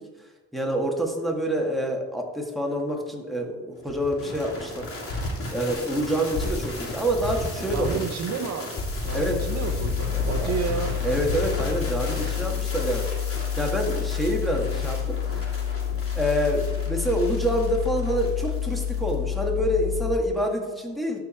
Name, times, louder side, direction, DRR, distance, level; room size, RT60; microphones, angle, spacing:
voice 1, 0.5-4.9 5.5-8.0 9.1-9.4 10.0-10.6 11.0-15.4 16.1-21.2, equal, ahead, 0 dB, 1.8 m, -27 dB
sound 1, 3.9-19.1, left 1 dB, 45° left, 2.9 m, -34 dB
voice 2, 7.7-11.0, right 7 dB, 60° right, 6 dB, 0.7 m, -31 dB
sound 2, 9.1-20.2, left 9 dB, 85° left, 0.9 m, -29 dB
13.0 x 4.7 x 4.4 m, 1.3 s
cardioid pair, 90°, 30 cm